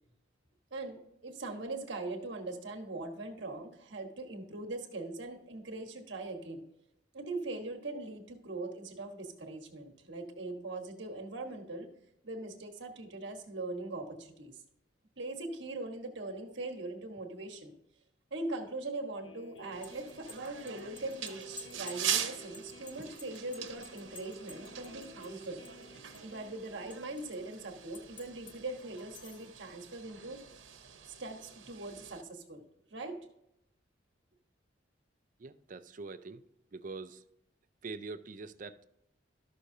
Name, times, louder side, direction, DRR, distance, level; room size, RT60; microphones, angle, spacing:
voice 1, 0.7-6.6 7.1-11.9 12.2-14.6 15.2-17.7 18.3-25.6 26.2-30.4 31.1-32.6 32.9-33.2, right 2 dB, 70° right, 1.3 m, -41 dB
sound 1, 19.2-26.6, right 1 dB, 85° left, 0.9 m, -53 dB
sound 2, 19.6-25.9 26.1-27.4 27.9-28.6 29.0-29.5, left 3 dB, 25° left, 0.7 m, -51 dB
sound 3, 19.7-32.2, right 9 dB, 85° right, 1.0 m, -42 dB
voice 2, 35.4-36.4 36.7-37.2 37.8-38.8, right 4 dB, 45° right, 0.5 m, -44 dB
13.0 x 6.3 x 2.7 m
head